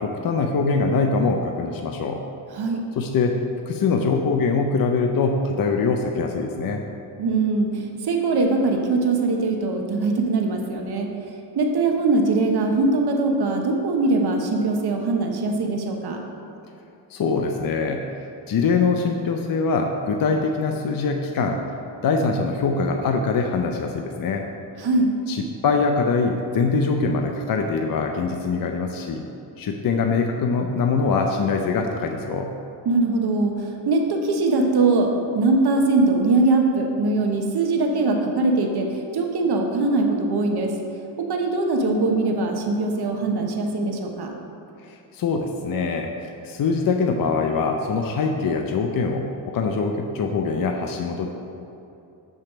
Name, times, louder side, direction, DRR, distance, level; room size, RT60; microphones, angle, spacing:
voice 1, 0.0-2.2 3.0-3.4 3.7-6.8 17.1-18.0 18.5-21.6 22.0-24.4 25.3-29.3 29.6-32.5 44.9-51.3, left 4 dB, 50° left, 4 dB, 0.6 m, -23 dB
voice 2, 7.2-7.7 8.0-11.1 11.6-16.2 24.8-25.1 32.8-33.5 33.9-35.1 35.3-40.7 41.3-44.3, right 3 dB, 55° right, 3 dB, 1.1 m, -21 dB
9.0 x 3.4 x 5.9 m, 2.7 s
cardioid pair, 70°, 45 cm